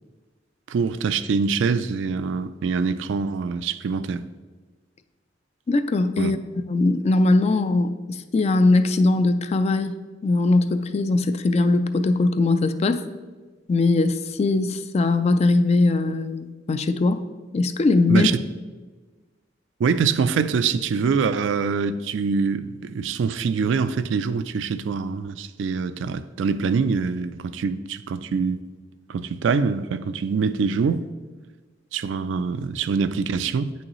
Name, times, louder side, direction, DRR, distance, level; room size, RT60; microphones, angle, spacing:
voice 1, 0.7-4.2 6.2-6.3 18.1-18.4 19.8-28.6 29.1-31.0 31.9-33.7, right 5 dB, 70° right, 0.3 m, -24 dB
voice 2, 5.7-6.4 6.7-9.9 10.2-13.0 13.7-17.2 17.5-18.3, left 2 dB, 35° left, 0.3 m, -20 dB
8.7 x 6.2 x 3.0 m
head